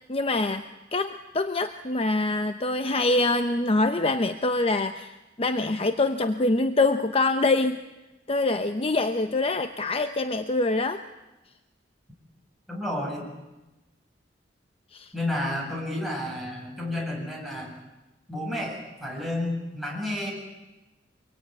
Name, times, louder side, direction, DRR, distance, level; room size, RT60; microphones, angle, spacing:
voice 1, 0.1-0.6 0.9-7.8 8.3-11.0 14.9-15.1, left 2 dB, 30° left, 9 dB, 0.9 m, -25 dB
voice 2, 12.7-13.3 15.1-17.8 18.3-20.3, left 1 dB, ahead, -2 dB, 7.7 m, -31 dB
25.5 x 23.5 x 9.4 m, 1.0 s
head